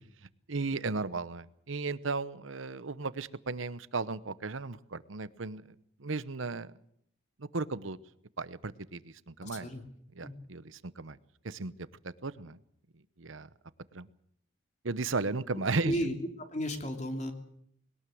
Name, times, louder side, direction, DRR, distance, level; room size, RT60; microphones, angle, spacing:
voice 1, 0.5-5.7 6.0-6.7 7.4-8.0 8.4-9.7 10.1-11.2 11.4-12.6 13.2-13.5 13.9-14.1 14.8-16.0, right 3 dB, 85° right, 16 dB, 1.0 m, -35 dB
voice 2, 9.4-9.9 10.2-10.3 15.8-17.3, equal, 35° left, 5 dB, 3.0 m, -34 dB
21.5 x 18.5 x 7.9 m, 0.69 s
head